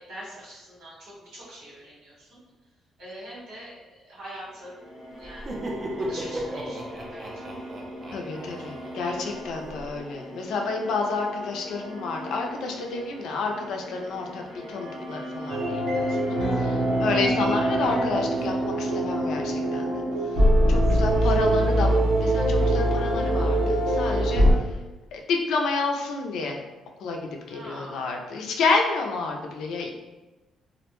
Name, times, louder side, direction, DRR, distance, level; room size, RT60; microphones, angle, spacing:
voice 1, 0.0-2.4 3.0-4.7 5.2-5.6 5.9-7.5 20.7-21.1 21.5-21.6 24.4-24.5 27.5-28.2, right 1 dB, 85° right, -7 dB, 1.4 m, -44 dB
sound 1, 4.5-20.8, equal, 15° left, 0.8 m, -35 dB
Laughter, 5.2-9.9, right 1 dB, 30° right, 0.4 m, -36 dB
voice 2, 8.1-20.0 20.7-24.4 25.1-26.6 27.0-27.2 27.5-29.9, left 4 dB, 70° left, 2 dB, 0.4 m, -29 dB
sound 2, 15.5-24.5, right 1 dB, 65° right, 0.7 m, -23 dB
2.4 x 2.1 x 2.9 m, 1.1 s
cardioid pair, 145°, 0 cm